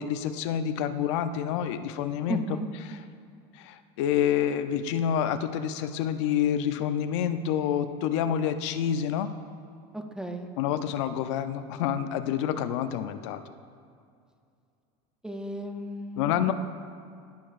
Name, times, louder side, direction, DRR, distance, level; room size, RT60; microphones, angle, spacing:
voice 1, 0.0-2.6 3.5-9.3 10.6-13.4 16.2-16.5, left 9 dB, 75° left, 10 dB, 0.5 m, -28 dB
voice 2, 2.3-2.7 9.9-10.5 15.2-16.5, right 1 dB, 5° right, 5 dB, 0.5 m, -35 dB
16.5 x 6.7 x 2.5 m, 2.4 s
supercardioid pair, 150°, 15 cm